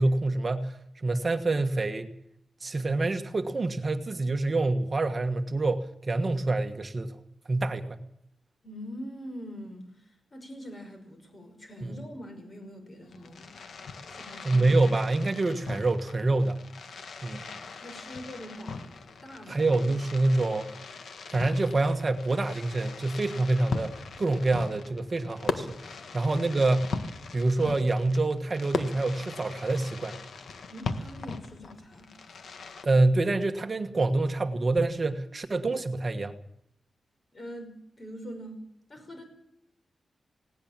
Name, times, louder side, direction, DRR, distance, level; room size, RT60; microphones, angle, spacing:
voice 1, 0.0-2.1 2.6-7.1 7.5-8.0 11.8-11.9 14.4-16.6 17.2-17.4 19.5-20.7 21.3-25.8 26.1-26.9 27.3-30.2 32.8-36.4, right 2 dB, 35° right, 8 dB, 1.4 m, -26 dB
voice 2, 8.6-13.4 14.1-14.6 17.4-18.9 19.2-19.6 30.7-32.1 37.3-39.2, equal, 35° left, 6 dB, 5.6 m, -43 dB
Fireworks, 13.0-32.8, left 4 dB, 75° left, 1.7 m, -39 dB
19.5 x 17.5 x 7.4 m, 0.74 s
wide cardioid pair, 130°, 0 cm